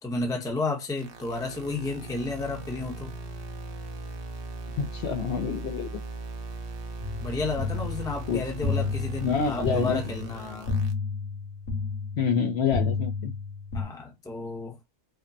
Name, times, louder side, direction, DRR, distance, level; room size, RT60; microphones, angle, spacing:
voice 1, 0.0-3.1 7.2-10.7 13.7-14.8, left 3 dB, 5° left, 0.6 m, -32 dB
sound 1, 1.0-10.9, right 2 dB, 55° right, 0.7 m, -39 dB
voice 2, 4.8-6.0 8.3-8.4 9.2-10.0 12.2-13.3, left 6 dB, 60° left, 0.8 m, -27 dB
sound 2, 7.0-13.8, left 4 dB, 85° left, 1.7 m, -31 dB
5.0 x 2.0 x 2.6 m
omnidirectional pair, 1.4 m